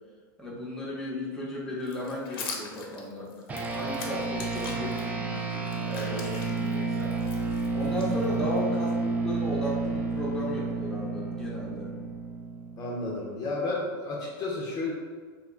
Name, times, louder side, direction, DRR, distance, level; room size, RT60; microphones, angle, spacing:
voice 1, 0.4-3.3 3.7-7.2 7.7-8.9 9.2-12.0, left 1 dB, 5° left, -5 dB, 0.8 m, -35 dB
sound 1, 1.8-5.0 5.5-8.6, left 4 dB, 80° left, 0.6 m, -42 dB
sound 2, 3.5-13.2, right 4 dB, 10° right, 0.3 m, -31 dB
voice 2, 12.8-14.9, left 2 dB, 30° left, -4 dB, 0.6 m, -32 dB
2.9 x 2.2 x 3.7 m, 1.5 s
hypercardioid pair, 125°, 12 cm